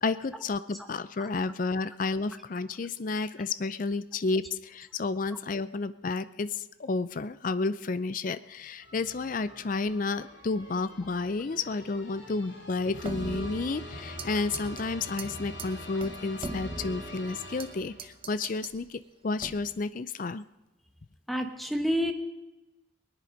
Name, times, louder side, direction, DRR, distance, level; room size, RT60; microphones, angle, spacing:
voice 1, 0.0-20.4, left 3 dB, 40° left, 14 dB, 0.4 m, -31 dB
sound 1, 8.8-18.3, left 1 dB, 65° left, 2.5 m, -44 dB
sound 2, 13.0-14.3 14.5-14.8 15.2-15.3 15.6-15.7 16.0-17.7 18.0-18.8 19.4-19.8, right 2 dB, 25° right, 0.8 m, -39 dB
voice 2, 21.3-22.1, equal, ahead, 5 dB, 1.0 m, -28 dB
19.5 x 10.5 x 5.2 m, 1.0 s
head